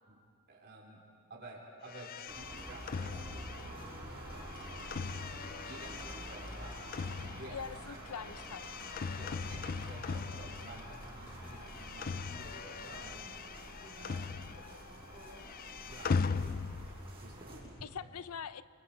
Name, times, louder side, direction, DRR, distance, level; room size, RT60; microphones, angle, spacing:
voice 1, 0.5-1.0 1.3-3.4 4.1-4.6 5.6-8.3 9.1-13.2 13.6-13.7 14.0-14.5 15.7-17.9, right 1 dB, 50° right, -2 dB, 3.8 m, -52 dB
sound 1, 1.9-11.1 11.4-14.9 15.1-17.0, left 5 dB, 40° left, 0.4 m, -40 dB
sound 2, 2.3-17.6, right 1 dB, 25° right, 6.4 m, -48 dB
sound 3, 3.6-12.1, left 1 dB, 20° left, 1.8 m, -61 dB
voice 2, 7.5-8.7 9.2-9.4 17.8-18.6, left 7 dB, 85° left, 15 dB, 0.6 m, -43 dB
28.0 x 24.5 x 4.4 m, 2.4 s
head